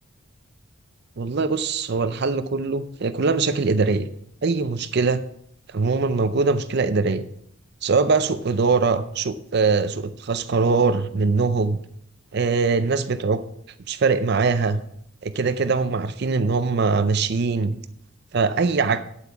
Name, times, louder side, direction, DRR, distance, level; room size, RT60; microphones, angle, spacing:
voice 1, 1.2-4.1 4.4-5.2 5.7-7.2 7.8-11.8 12.3-13.4 13.9-14.8 15.2-17.7 18.3-19.0, right 4 dB, 50° right, 12 dB, 0.5 m, -22 dB
8.8 x 8.3 x 5.8 m, 0.70 s
head